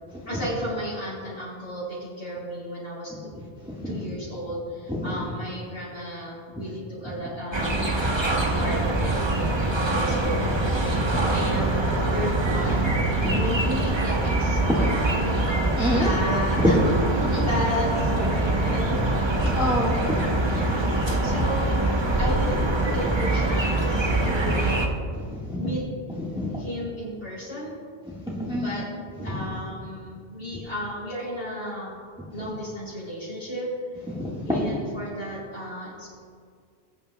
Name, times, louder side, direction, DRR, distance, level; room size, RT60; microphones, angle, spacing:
voice 1, 0.3-3.1 3.8-9.5 9.8-13.0 13.3-15.4 15.9-16.8 17.3-19.0 20.5-21.8 22.2-24.8 25.6-25.8 26.6-27.7 28.5-28.8 29.2-32.0 32.3-33.7 34.5-36.2, equal, 80° left, -9 dB, 3.6 m, -33 dB
sound 1, 7.5-24.9, right 2 dB, 25° right, 0.8 m, -24 dB
voice 2, 10.9-11.5 13.2-13.4 15.8-16.2 16.6-16.7 17.2-17.5 19.4-20.6 21.2-21.3 24.2-24.4 25.3-25.6 26.3-26.5 28.3-28.8 29.2-29.3 34.1-34.7, left 1 dB, 5° right, -5 dB, 1.5 m, -27 dB
20.0 x 8.8 x 2.3 m, 2.1 s
omnidirectional pair, 1.1 m